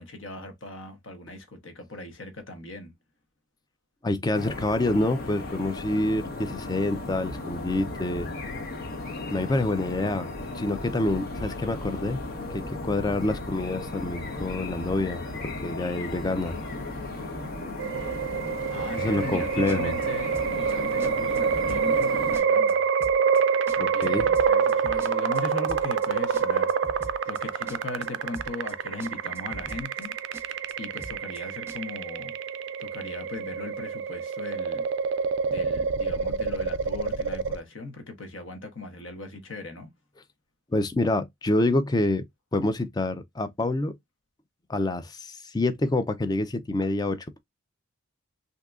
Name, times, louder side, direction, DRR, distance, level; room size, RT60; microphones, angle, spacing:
voice 1, 0.0-2.9 18.7-22.9 23.7-30.2 30.8-32.4 32.8-34.9 35.5-39.9, left 2 dB, 65° left, 1.0 m, -39 dB
voice 2, 4.0-8.3 9.3-10.3 10.5-12.2 12.5-16.6 19.0-19.9 23.8-24.3 40.7-42.2 42.5-44.0 44.7-47.4, left 2 dB, 20° left, 0.3 m, -27 dB
sound 1, 4.3-22.4, left 2 dB, 45° left, 0.8 m, -36 dB
sound 2, 17.8-37.6, right 6 dB, 55° right, 0.3 m, -27 dB
sound 3, 19.7-20.1 20.3-20.7 21.0-21.1 21.3-22.1 22.3-22.7 23.0-23.4 23.7-25.4 25.7-26.1 26.3-27.4 27.7-28.1 28.3-28.7 29.0-29.1 29.3-30.1 30.3-30.7 31.0-31.4 31.7-31.8, right 2 dB, 10° right, 0.7 m, -42 dB
3.6 x 2.7 x 2.3 m
head